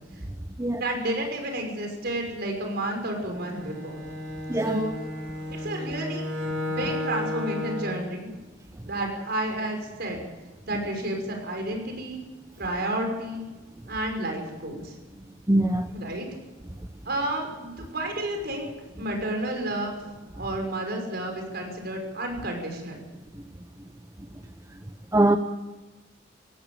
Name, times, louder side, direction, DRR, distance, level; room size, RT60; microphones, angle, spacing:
voice 1, 0.7-4.0 4.6-4.9 5.5-6.2 6.7-8.3 8.8-10.2 10.7-12.2 12.6-13.5 13.9-14.9 15.9-16.3 17.1-18.7 19.0-20.0 20.4-23.0, right 1 dB, 55° right, 5.8 m, -31 dB
Bowed string instrument, 3.3-8.1, left 1 dB, 90° right, 3.0 m, -33 dB
voice 2, 4.5-4.8 15.5-15.9 25.1-25.4, right 1 dB, 15° right, 0.8 m, -21 dB
18.5 x 16.0 x 8.9 m
head